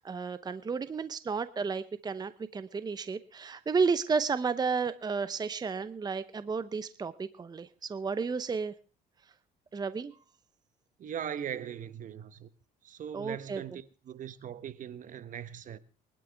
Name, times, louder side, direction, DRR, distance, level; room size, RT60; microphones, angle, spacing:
voice 1, 0.0-8.7 9.7-10.2 13.1-13.6, right 5 dB, 25° right, 0.8 m, -32 dB
voice 2, 11.0-12.5 12.8-15.8, right 9 dB, 50° right, 1.1 m, -40 dB
23.5 x 12.0 x 3.5 m
cardioid pair, 110°, 17 cm